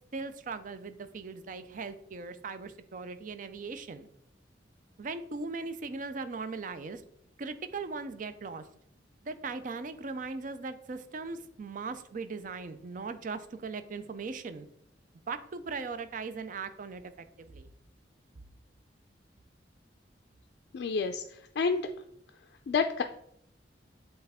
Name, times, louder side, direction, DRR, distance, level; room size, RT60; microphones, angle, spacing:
voice 1, 0.0-4.1 5.0-7.0 7.4-8.7 9.2-14.7 15.3-17.0 17.4-17.7, right 4 dB, 50° right, 11 dB, 0.5 m, -39 dB
voice 2, 20.7-21.8 22.7-23.0, left 5 dB, 65° left, 5 dB, 0.3 m, -29 dB
7.9 x 3.4 x 3.5 m, 0.73 s
head